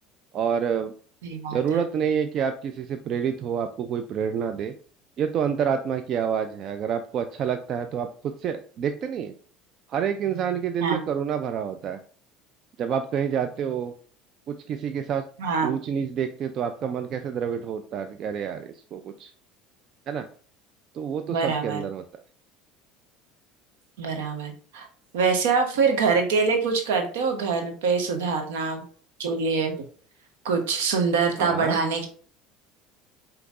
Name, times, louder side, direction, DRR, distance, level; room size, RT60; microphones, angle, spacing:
voice 1, 0.3-0.9 1.5-4.7 5.2-9.3 9.9-12.0 12.8-13.9 14.5-15.2 15.6-19.3 20.1-20.3 20.9-22.0 31.4-31.8, right 7 dB, 50° right, 7 dB, 0.4 m, -28 dB
voice 2, 1.2-1.6 10.8-11.0 15.4-15.7 21.3-21.8 24.0-24.9 25.1-28.8 29.2-29.7 30.4-32.1, right 5 dB, 80° right, 4 dB, 0.9 m, -24 dB
5.1 x 2.9 x 2.5 m, 0.44 s
hypercardioid pair, 80°, 0 cm